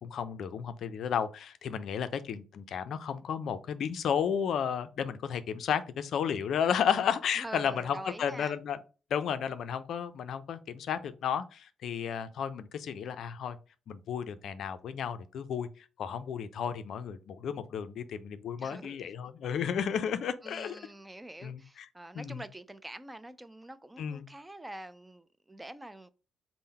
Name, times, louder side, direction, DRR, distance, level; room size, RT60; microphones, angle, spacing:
voice 1, 0.0-8.8 9.1-13.6 13.9-15.7 16.0-20.8 21.4-21.9 22.1-22.4 24.0-24.2, left 8 dB, 70° left, 0.4 m, -33 dB
voice 2, 7.4-8.5 18.6-19.1 20.4-26.1, right 1 dB, 10° right, 0.3 m, -45 dB
3.7 x 2.0 x 4.2 m
cardioid pair, 90°, 0 cm